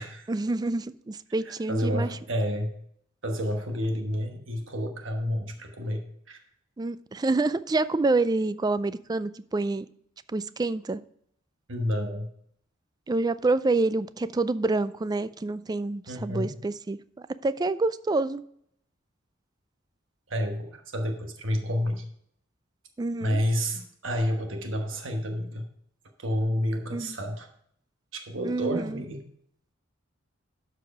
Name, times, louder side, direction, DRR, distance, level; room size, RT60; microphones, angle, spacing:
voice 1, 0.3-2.1 6.8-9.9 10.3-11.0 13.1-18.4 23.0-23.4 26.9-27.2 28.4-29.0, right 3 dB, 20° right, 15 dB, 0.3 m, -27 dB
voice 2, 1.4-2.8 3.2-6.4 11.7-12.3 16.1-16.6 20.3-22.1 23.2-25.6 26.2-27.5 28.1-29.2, equal, 70° right, 4 dB, 1.2 m, -30 dB
12.5 x 4.8 x 4.8 m, 0.69 s
head